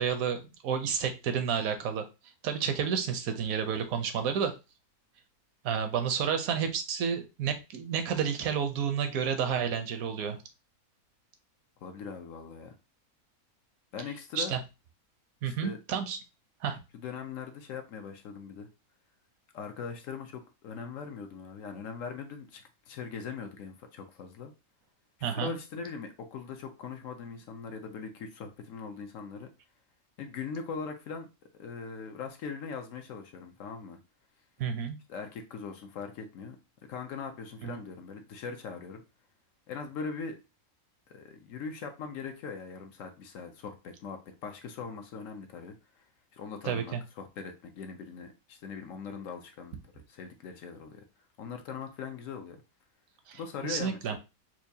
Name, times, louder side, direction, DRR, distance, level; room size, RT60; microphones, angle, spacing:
voice 1, 0.0-2.1 2.4-4.5 5.6-10.4 14.3-14.6 15.4-16.2 16.6-16.8 25.2-25.5 34.6-35.0 37.6-37.8 46.6-47.0 53.3-54.2, right 7 dB, 75° right, 7 dB, 1.0 m, -30 dB
voice 2, 11.8-12.7 13.9-14.5 15.4-15.8 16.9-18.7 19.5-24.5 25.2-29.5 30.2-31.3 31.5-34.0 35.1-36.6 36.8-39.0 39.7-40.4 41.1-45.7 46.3-51.0 51.4-52.6 53.3-54.2, left 5 dB, 70° left, 6 dB, 0.9 m, -41 dB
4.5 x 2.3 x 2.6 m, 0.28 s
omnidirectional pair, 1.5 m